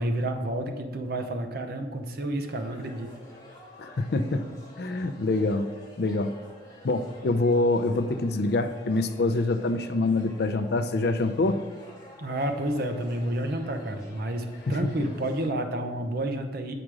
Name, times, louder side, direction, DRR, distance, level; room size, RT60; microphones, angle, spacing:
voice 1, 0.0-3.1 12.2-16.7, right 1 dB, 60° right, 6 dB, 0.7 m, -30 dB
sound 1, 2.4-15.5, left 1 dB, 20° left, 1.8 m, -50 dB
voice 2, 3.8-4.5 4.8-5.7 6.0-6.3 6.8-11.6 14.7-14.8, left 2 dB, 65° left, 8 dB, 0.5 m, -25 dB
7.4 x 5.0 x 4.8 m, 1.4 s
head